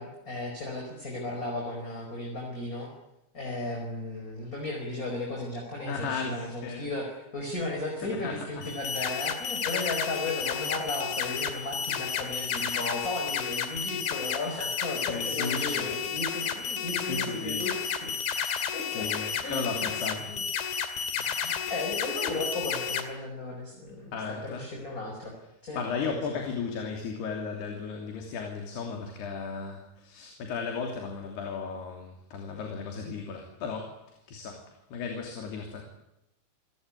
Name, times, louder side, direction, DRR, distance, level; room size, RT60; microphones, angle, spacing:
voice 1, 0.0-2.9 3.3-17.7 18.0-18.1 18.7-19.1 19.4-19.9 20.3-20.4 21.2-24.1 24.4-25.3 25.6-25.8 26.0-26.4, left 2 dB, 20° left, 1 dB, 4.8 m, -35 dB
voice 2, 5.8-7.0 8.0-8.8 15.0-16.0 16.9-17.7 18.3-20.4 21.5-21.6 24.1-24.7 25.2-25.3 25.7-35.8, left 5 dB, 65° left, 2 dB, 5.0 m, -36 dB
sound 1, 8.6-23.0, left 7 dB, 85° left, 4.7 m, -32 dB
28.5 x 18.0 x 9.8 m, 0.86 s
omnidirectional pair, 5.1 m